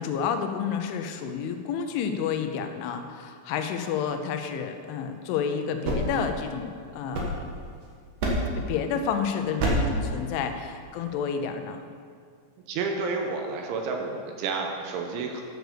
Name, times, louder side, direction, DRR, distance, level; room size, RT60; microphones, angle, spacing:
voice 1, 0.0-7.4 8.7-11.8, left 7 dB, 80° left, 6 dB, 3.1 m, -30 dB
sound 1, 5.6-7.8 8.2-8.7 9.6-10.0, right 1 dB, 60° right, 2.2 m, -28 dB
voice 2, 12.7-15.4, right 4 dB, 80° right, 2 dB, 3.1 m, -30 dB
10.5 x 6.5 x 6.7 m, 2.1 s
omnidirectional pair, 5.6 m